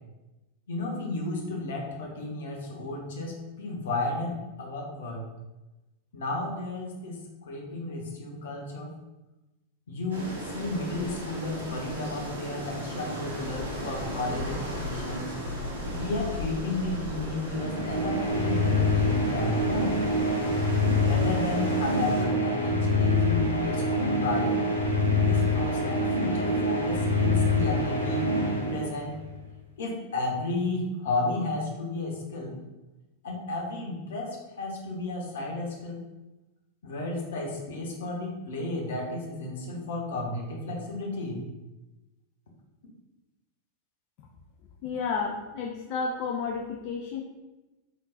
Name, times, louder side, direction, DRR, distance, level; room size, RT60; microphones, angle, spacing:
voice 1, 0.7-5.2 6.1-8.9 9.9-15.4 15.9-19.9 21.0-24.6 25.2-29.2 29.8-32.6 33.2-34.3 34.6-36.0 36.8-41.4, left 2 dB, 60° left, -1 dB, 0.9 m, -33 dB
sound 1, 10.1-22.3, equal, 65° right, 0.9 m, -36 dB
sound 2, 17.5-29.3, left 2 dB, 90° left, 0.7 m, -25 dB
voice 2, 44.8-47.2, left 5 dB, 45° left, 0 dB, 0.4 m, -31 dB
3.9 x 3.7 x 2.4 m, 1.1 s
figure-of-eight pair, 90°, 0 cm